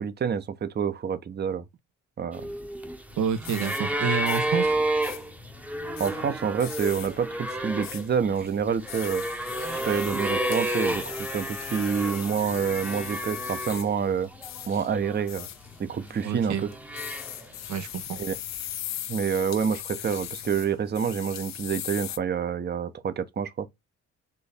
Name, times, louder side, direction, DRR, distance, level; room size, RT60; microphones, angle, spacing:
voice 1, 0.0-1.6 2.2-2.5 6.0-9.2 9.8-14.3 14.7-15.5 15.8-16.7 18.2-18.4 19.1-23.7, right 7 dB, 35° right, 0.7 m, -28 dB
sound 1, 2.3-14.0 14.3-15.2 15.9-17.7 18.7-18.8, right 1 dB, 5° right, 0.8 m, -31 dB
sound 2, 3.1-22.2, left 12 dB, 65° left, 0.6 m, -40 dB
voice 2, 3.2-4.7 16.2-16.6 17.7-18.0, right 7 dB, 75° right, 0.9 m, -28 dB
4.5 x 2.6 x 3.3 m
cardioid pair, 90°, 30 cm